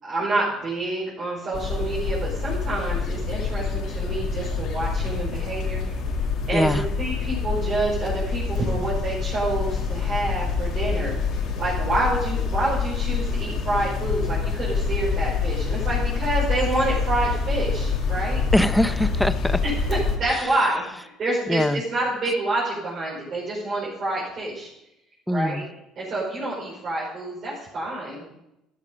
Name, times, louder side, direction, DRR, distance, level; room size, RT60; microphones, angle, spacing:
voice 1, 0.0-5.8 6.5-11.1 11.6-18.4 19.6-24.7 25.3-25.6 26.0-28.2, right 2 dB, 40° right, -7 dB, 4.7 m, -27 dB
sound 1, 1.5-20.2, left 5 dB, 55° left, 2.3 m, -26 dB
voice 2, 6.5-6.8 18.5-19.6 20.3-20.4 21.5-21.8 25.3-25.7, left 1 dB, 5° left, 12 dB, 0.7 m, -22 dB
13.5 x 11.5 x 5.3 m, 0.86 s
cardioid pair, 145°, 0 cm